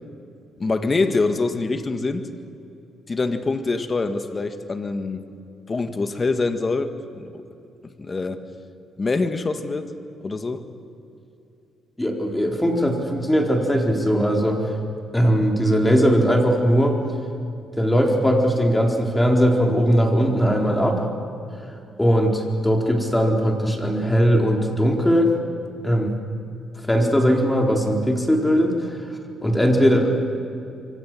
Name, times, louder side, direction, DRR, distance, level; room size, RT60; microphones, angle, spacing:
voice 1, 0.6-2.3 3.1-5.3 5.7-7.4 7.8-8.4 9.0-9.9 10.2-10.7, left 3 dB, 30° left, 8 dB, 1.9 m, -25 dB
voice 2, 12.0-14.6 15.1-17.0 17.8-21.0 22.0-25.3 25.8-26.1 26.8-28.8 29.4-30.2, equal, 10° left, 1 dB, 4.3 m, -19 dB
27.0 x 24.0 x 7.7 m, 2.7 s
cardioid pair, 90°, 0 cm